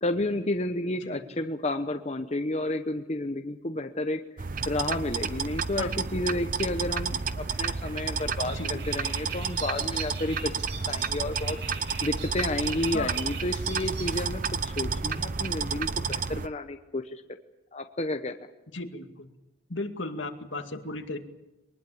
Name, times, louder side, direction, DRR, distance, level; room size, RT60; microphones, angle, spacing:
voice 1, 0.0-4.2 4.7-10.5 10.9-11.6 12.0-17.2 17.7-18.4, left 2 dB, 35° left, 6 dB, 1.0 m, -31 dB
sound 1, 4.4-16.5, right 5 dB, 45° right, 0.7 m, -31 dB
sound 2, 6.5-16.1, right 5 dB, 65° right, 7.1 m, -43 dB
voice 2, 18.7-19.3 19.7-21.2, left 2 dB, 75° left, 5 dB, 2.4 m, -35 dB
23.0 x 20.0 x 8.6 m, 0.99 s
head